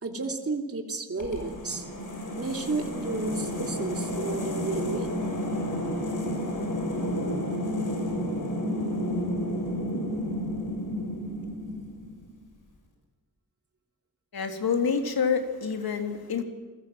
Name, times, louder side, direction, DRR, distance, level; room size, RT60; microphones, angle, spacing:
voice 1, 0.0-1.9 2.4-5.1, right 3 dB, 40° right, 4 dB, 3.2 m, -32 dB
sound 1, 1.2-12.3, equal, 60° left, 7.1 m, -31 dB
voice 2, 14.3-16.4, left 6 dB, 80° left, 5 dB, 3.3 m, -27 dB
29.0 x 21.0 x 7.8 m, 1.4 s
wide cardioid pair, 145°, 36 cm